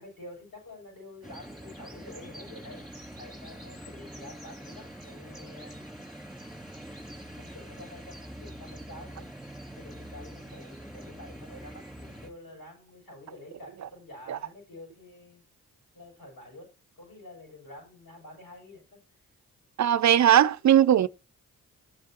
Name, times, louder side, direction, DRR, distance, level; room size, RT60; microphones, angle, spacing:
voice 1, 0.0-5.8 7.0-9.4 9.7-15.4 15.9-19.3, left 1 dB, 80° left, 7.5 m, -48 dB
sound 1, 1.2-12.3, right 1 dB, ahead, 3.2 m, -44 dB
voice 2, 19.8-21.1, right 10 dB, 50° right, 0.5 m, -19 dB
14.5 x 7.9 x 3.0 m
supercardioid pair, 40°, 36 cm